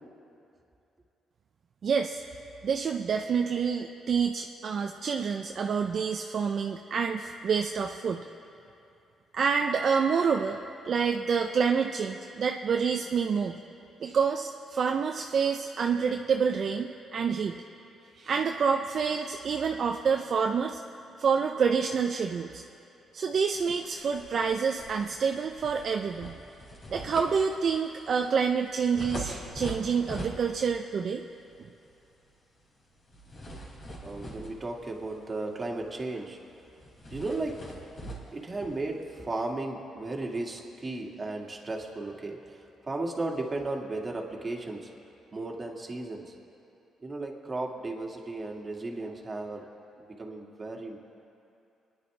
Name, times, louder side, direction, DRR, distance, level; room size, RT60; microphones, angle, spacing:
voice 1, 1.8-2.2 2.6-8.2 9.3-10.6 10.9-13.6 14.0-17.6 18.2-20.8 21.2-22.6 23.1-26.4 26.9-31.2, right 6 dB, 55° right, 3 dB, 0.5 m, -27 dB
sound 1, 23.5-30.9 31.3-31.5 33.1-35.3 35.6-35.9 36.1-36.3 36.8-39.4, equal, 45° left, 3.1 m, -43 dB
voice 2, 34.0-36.4 37.1-37.6 38.3-42.6 42.9-44.9 45.3-46.3 47.0-49.7 50.2-51.0, right 2 dB, 25° right, 0 dB, 1.9 m, -35 dB
29.5 x 10.5 x 3.3 m, 2.7 s
cardioid pair, 90°, 0 cm